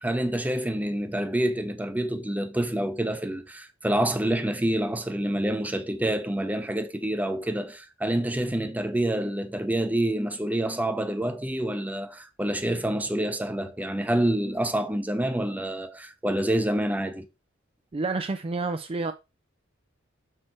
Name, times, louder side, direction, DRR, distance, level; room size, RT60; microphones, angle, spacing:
voice 1, 0.0-17.3, right 1 dB, 10° right, 0.8 m, -27 dB
voice 2, 17.9-19.1, right 3 dB, 30° right, 0.4 m, -29 dB
6.4 x 4.5 x 4.3 m
head